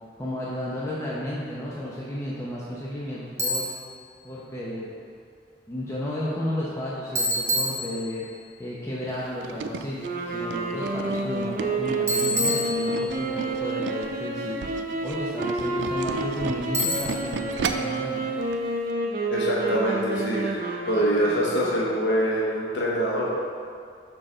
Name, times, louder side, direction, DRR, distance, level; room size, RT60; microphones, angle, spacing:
voice 1, 0.2-3.6 4.2-4.9 5.7-8.3 8.6-18.2, left 1 dB, 15° left, -7 dB, 0.7 m, -33 dB
Bicycle, 3.4-3.9 7.2-8.4 12.1-13.3 16.7-17.4, left 1 dB, 15° right, 1.1 m, -27 dB
Tools, 9.1-14.1 14.5-18.0 18.4-18.6 18.9-19.0, right 5 dB, 85° right, 0.4 m, -34 dB
sound 1, 10.0-21.8, right 2 dB, 55° right, 0.8 m, -29 dB
voice 2, 19.3-20.6 20.9-23.3, equal, 85° left, -5 dB, 1.1 m, -24 dB
6.4 x 4.6 x 4.3 m, 2.2 s
head